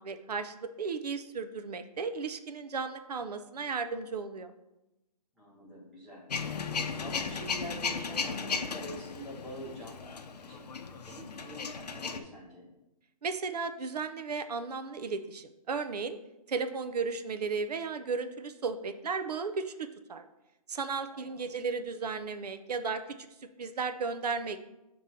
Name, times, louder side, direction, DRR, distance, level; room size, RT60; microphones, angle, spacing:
voice 1, 0.0-4.5 13.2-16.2 16.5-20.3 20.7-23.2 23.6-24.6, right 4 dB, 75° right, 9 dB, 0.6 m, -35 dB
voice 2, 5.4-6.2 6.6-10.1 10.5-10.6 11.0-12.7 21.1-21.5, equal, ahead, -11 dB, 0.6 m, -45 dB
Male speech man speaking / Vehicle / Engine starting, 6.3-12.2, left 5 dB, 80° left, 0.6 m, -36 dB
6.1 x 3.0 x 5.2 m, 0.94 s
hypercardioid pair, 175°, 20 cm